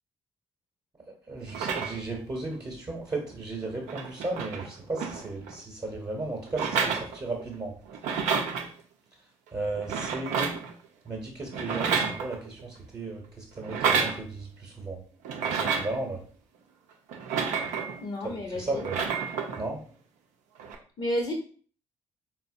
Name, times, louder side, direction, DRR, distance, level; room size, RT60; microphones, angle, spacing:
voice 1, 1.3-7.7 9.5-10.5 11.0-15.0 15.4-16.2 18.2-19.0 19.6-19.8, right 2 dB, 30° right, 0 dB, 0.9 m, -35 dB
sound 1, 1.5-2.2 3.3-3.4 3.6-5.6 6.5-7.5 7.9-8.7 9.7-10.7 11.5-12.6 13.6-14.2 15.2-16.0 17.1-18.0 18.7-19.6 20.6-20.7, right 6 dB, 65° right, 0.5 m, -30 dB
voice 2, 18.0-18.8 21.0-21.3, left 1 dB, 45° left, 1 dB, 0.6 m, -31 dB
4.0 x 2.0 x 2.6 m, 0.42 s
figure-of-eight pair, 40°, 13 cm